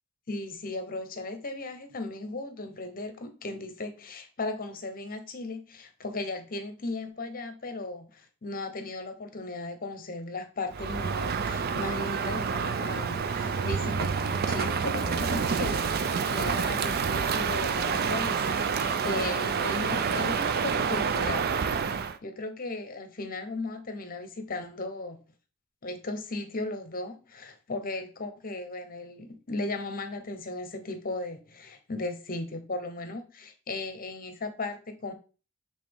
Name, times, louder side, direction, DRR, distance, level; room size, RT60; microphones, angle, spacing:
voice 1, 0.3-21.5 21.9-25.2 25.8-35.1, left 2 dB, 40° left, 0.9 m, -36 dB
Crow, 10.7-22.2, right 6 dB, 45° right, 0.4 m, -28 dB
7.4 x 3.6 x 3.5 m
head